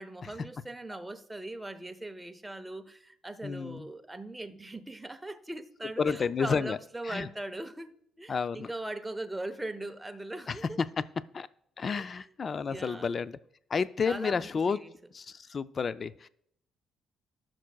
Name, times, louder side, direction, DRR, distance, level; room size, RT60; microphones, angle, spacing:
voice 1, 0.0-7.9 8.2-10.8 11.9-12.1 12.7-13.1 14.0-14.9, right 2 dB, 10° right, 0.7 m, -40 dB
voice 2, 3.4-3.9 6.0-6.8 7.0-7.3 8.3-8.7 10.5-10.9 11.3-11.5 11.8-13.4 13.7-14.8 15.1-16.3, left 5 dB, 45° left, 0.4 m, -31 dB
16.0 x 6.0 x 2.3 m
cardioid pair, 90°, 0 cm